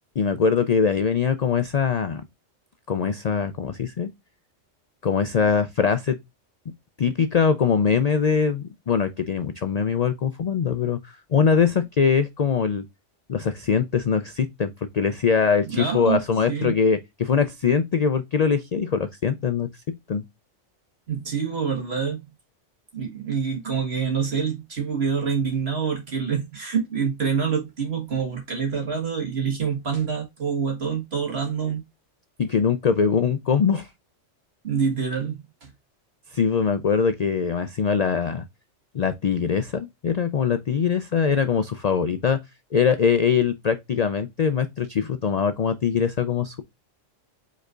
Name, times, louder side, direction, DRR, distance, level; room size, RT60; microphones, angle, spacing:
voice 1, 0.2-2.2 2.9-4.1 5.0-6.2 7.0-12.8 13.3-19.7 20.1-20.2 32.4-33.9 36.3-38.4 38.9-42.4 42.7-46.6, left 6 dB, 55° left, 0.4 m, -22 dB
voice 2, 15.6-16.2 16.5-16.7 21.1-22.3 22.9-31.8 34.6-35.7, right 6 dB, 55° right, 1.8 m, -26 dB
5.3 x 4.0 x 2.4 m
omnidirectional pair, 1.3 m